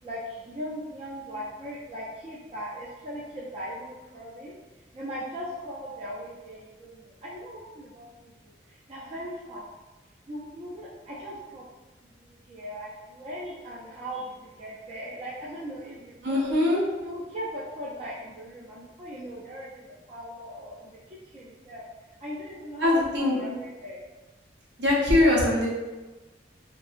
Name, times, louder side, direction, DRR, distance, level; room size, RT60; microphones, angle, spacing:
voice 1, 0.0-4.5 4.9-8.5 8.9-9.7 10.3-11.7 12.2-16.4 17.0-21.8 22.2-24.0, equal, 35° right, -6 dB, 0.4 m, -39 dB
voice 2, 16.2-16.8 22.8-23.4 24.8-25.7, left 2 dB, 70° right, -4 dB, 0.7 m, -22 dB
2.7 x 2.4 x 2.4 m, 1.2 s
head